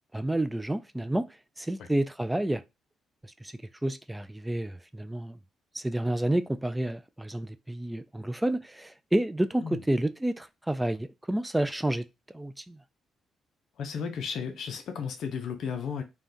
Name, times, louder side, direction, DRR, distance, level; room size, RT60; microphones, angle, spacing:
voice 1, 0.1-1.3 1.6-2.6 3.4-3.5 3.8-5.4 5.7-12.1 12.3-12.8, right 1 dB, 10° right, 0.3 m, -29 dB
voice 2, 13.8-16.0, left 6 dB, 70° left, 0.6 m, -34 dB
3.5 x 2.2 x 2.6 m
cardioid pair, 90°, 0 cm